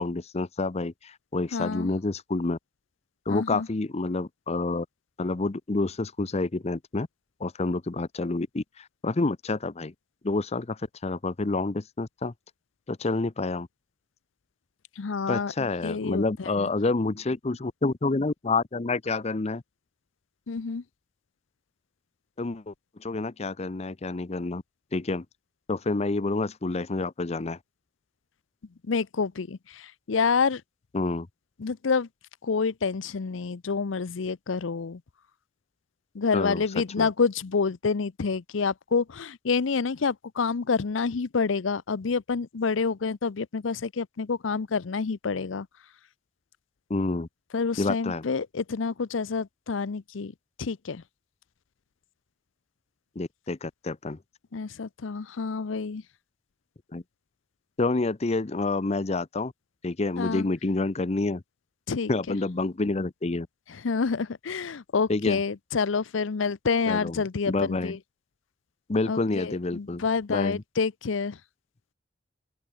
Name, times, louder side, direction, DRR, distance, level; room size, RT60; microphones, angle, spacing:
voice 1, 0.0-2.6 3.3-4.9 5.2-7.1 7.4-9.9 10.2-12.3 12.9-13.7 15.3-19.6 22.4-22.7 23.0-24.6 24.9-25.2 25.7-27.6 30.9-31.3 36.3-37.1 46.9-47.3 47.8-48.3 53.2-54.2 56.9-57.0 57.8-59.5 59.8-61.4 62.1-63.5 65.1-65.4 66.9-68.0 68.9-70.0 70.3-70.6, left 3 dB, 35° left, 0.7 m, -28 dB
voice 2, 1.5-1.9 3.3-3.7 15.0-15.5 15.8-16.2 20.5-20.8 28.9-29.6 30.1-30.6 31.6-32.1 32.5-35.0 36.2-45.7 47.5-50.3 50.6-51.0 54.5-56.0 60.2-60.5 61.9-62.4 63.8-68.0 69.1-69.2 69.4-71.3, left 5 dB, 80° left, 0.6 m, -28 dB
open air
head